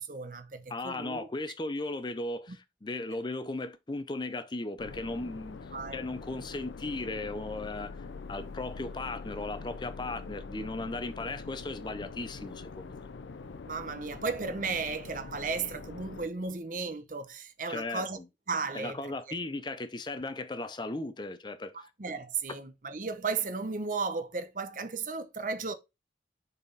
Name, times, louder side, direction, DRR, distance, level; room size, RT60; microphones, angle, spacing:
voice 1, 0.0-1.3 2.5-2.6 5.7-6.0 13.7-18.2 18.5-19.4 21.7-25.7, right 4 dB, 45° right, 0.8 m, -35 dB
voice 2, 0.7-13.1 17.7-18.2 18.7-21.9, left 2 dB, 25° left, 0.5 m, -37 dB
sound 1, 4.8-16.3, left 4 dB, 85° left, 0.5 m, -44 dB
7.0 x 4.1 x 3.9 m
head